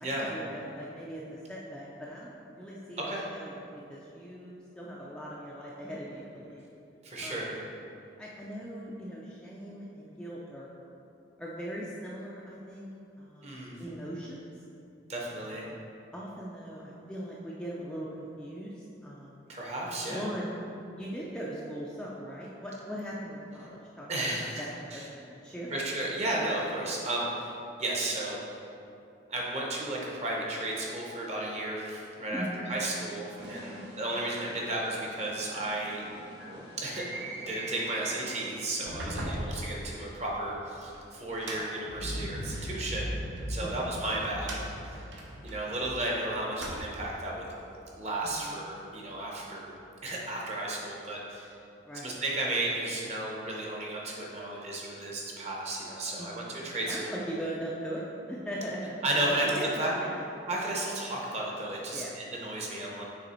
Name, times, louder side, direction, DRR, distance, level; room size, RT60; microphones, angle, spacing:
voice 1, 0.1-6.7 7.2-7.5 8.2-10.7 11.4-12.9 13.2-14.5 15.3-15.8 16.1-19.4 20.1-20.5 20.9-25.8 32.3-32.7 33.7-33.9 39.1-39.4 43.6-44.0 48.2-48.6 51.9-52.1 56.2-56.5 56.9-59.0 59.2-60.3 61.9-62.2, equal, 5° left, -6 dB, 0.4 m, -40 dB
voice 2, 7.0-7.6 13.4-13.7 15.1-15.6 19.5-20.2 24.1-24.6 24.9-25.0 25.7-27.5 27.8-28.6 29.3-36.1 36.8-37.1 37.4-43.1 43.5-45.1 45.4-47.5 48.0-49.7 50.0-51.5 52.0-57.2 59.0-59.5 59.8-59.9 60.5-63.1, right 1 dB, 35° right, -3 dB, 0.9 m, -33 dB
sound 1, 33.4-38.8, right 2 dB, 65° right, 1.3 m, -43 dB
sound 2, 38.7-42.8 43.4-46.1 46.4-47.2, right 1 dB, 80° right, 0.9 m, -40 dB
Explosion, 41.9-47.9 48.2-48.3, equal, 60° left, 0.7 m, -39 dB
6.6 x 3.4 x 4.3 m, 2.7 s
head